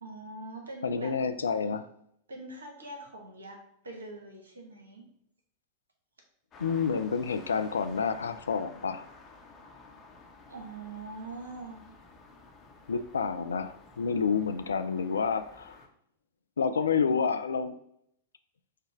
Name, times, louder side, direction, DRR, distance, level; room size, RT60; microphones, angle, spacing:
voice 1, 0.0-1.2 2.3-5.1 10.5-11.8, right 2 dB, 75° right, 2 dB, 1.0 m, -43 dB
voice 2, 0.8-1.9 6.6-9.1 12.9-15.8 16.6-17.8, left 5 dB, 70° left, 9 dB, 0.3 m, -29 dB
sound 1, 6.5-15.9, left 3 dB, 25° left, 0.8 m, -53 dB
4.9 x 2.2 x 4.4 m, 0.70 s
figure-of-eight pair, 90°, 0 cm